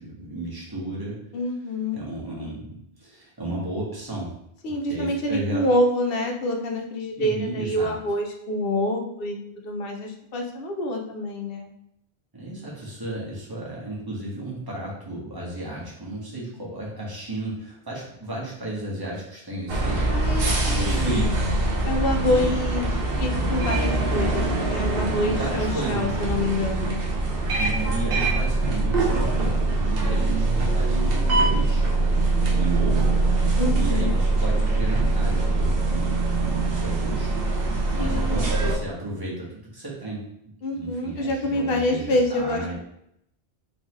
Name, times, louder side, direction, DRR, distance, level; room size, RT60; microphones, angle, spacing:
voice 1, 0.0-1.2 1.9-4.3 4.6-5.6 7.2-7.9 12.3-21.4 22.3-22.6 25.3-26.4 27.6-31.8 32.1-37.3 37.9-40.2 40.7-42.7, right 2 dB, 20° right, -5 dB, 1.3 m, -33 dB
voice 2, 1.3-2.0 4.6-11.7 20.1-21.3 21.8-22.9 23.2-27.0 33.6-34.1 38.0-38.5 40.6-42.7, left 1 dB, 65° left, 2 dB, 0.9 m, -27 dB
sound 1, 19.7-38.7, right 2 dB, 60° right, 1.0 m, -23 dB
3.9 x 3.7 x 3.0 m, 0.76 s
omnidirectional pair, 1.1 m